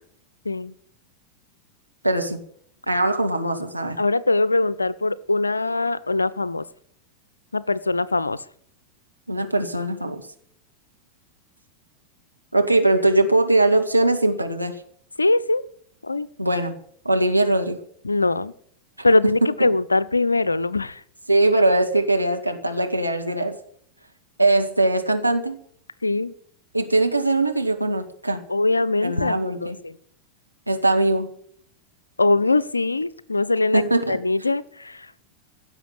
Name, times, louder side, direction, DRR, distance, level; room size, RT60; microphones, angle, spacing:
voice 1, 2.0-2.4 2.9-4.0 9.3-10.3 12.5-14.8 16.4-16.8 17.0-17.8 19.4-19.7 21.3-23.6 24.4-25.6 26.7-28.4 29.0-29.8 30.7-31.3 33.7-34.2, right 2 dB, 85° right, 4 dB, 1.9 m, -21 dB
voice 2, 4.0-6.7 7.5-8.4 15.2-15.6 16.0-16.3 18.0-18.5 19.0-21.0 26.0-26.3 28.5-30.0 32.2-35.1, left 2 dB, 80° left, 18 dB, 0.7 m, -22 dB
16.0 x 7.5 x 8.7 m, 0.62 s
figure-of-eight pair, 90°, 0 cm